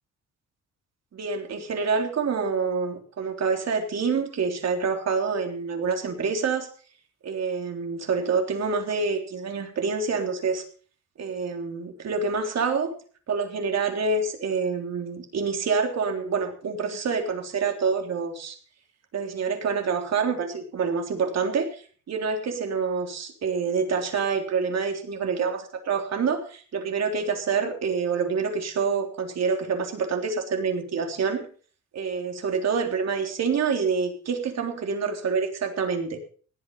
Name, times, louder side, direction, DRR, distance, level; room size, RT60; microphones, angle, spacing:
voice 1, 1.1-6.7 7.2-10.6 11.2-12.9 13.3-18.6 19.1-31.5 31.9-36.2, right 5 dB, 60° right, 3 dB, 3.6 m, -27 dB
18.5 x 8.5 x 5.5 m, 0.43 s
cardioid pair, 90°, 30 cm